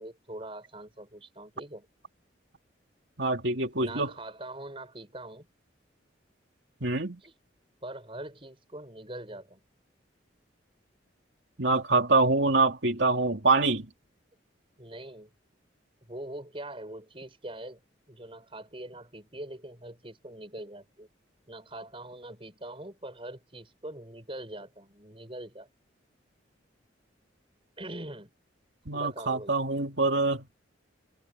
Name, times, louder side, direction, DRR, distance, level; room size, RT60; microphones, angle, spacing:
voice 1, 0.0-1.9 3.7-5.5 7.2-7.3 7.8-9.6 14.8-15.3 16.1-17.8 18.1-21.1 21.5-25.7 27.8-28.3 28.9-29.5, right 1 dB, 30° right, 7.2 m, -42 dB
voice 2, 3.2-4.1 6.8-7.2 11.6-13.9 28.9-30.5, right 3 dB, 70° right, 2.8 m, -25 dB
head